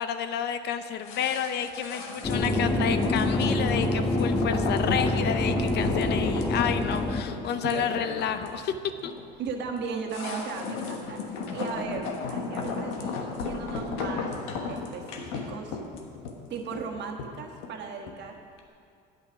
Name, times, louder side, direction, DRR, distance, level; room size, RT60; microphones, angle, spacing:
voice 1, 0.0-8.8 9.0-9.1, left 8 dB, 55° left, 10 dB, 0.7 m, -30 dB
sound 1, 1.0-18.3 18.6-18.7, left 4 dB, 80° left, 1.2 m, -34 dB
sound 2, 2.2-7.2, left 1 dB, 20° left, 1.2 m, -26 dB
voice 2, 7.6-7.9 9.4-14.3 14.7-15.8 16.5-18.4, right 5 dB, 60° right, 2 dB, 1.4 m, -36 dB
9.2 x 8.0 x 6.0 m, 2.3 s
supercardioid pair, 90°, 20 cm